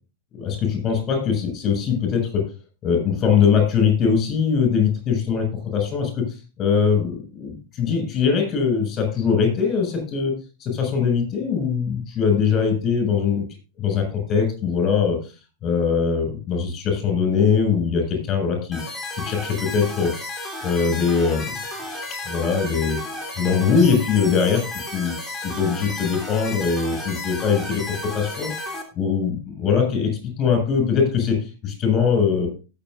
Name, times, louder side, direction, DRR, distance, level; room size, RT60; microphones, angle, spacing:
voice 1, 0.3-2.5 2.8-10.4 10.6-13.4 13.8-15.2 15.6-18.8 19.1-20.1 20.6-21.6 22.3-23.0 23.4-24.7 24.9-25.1 25.4-28.5 29.0-32.5, left 6 dB, 30° left, 4 dB, 6.8 m, -21 dB
sound 1, 18.7-28.8, left 2 dB, 5° left, 3.2 m, -33 dB
19.0 x 7.6 x 2.7 m, 0.33 s
figure-of-eight pair, 90°, 0 cm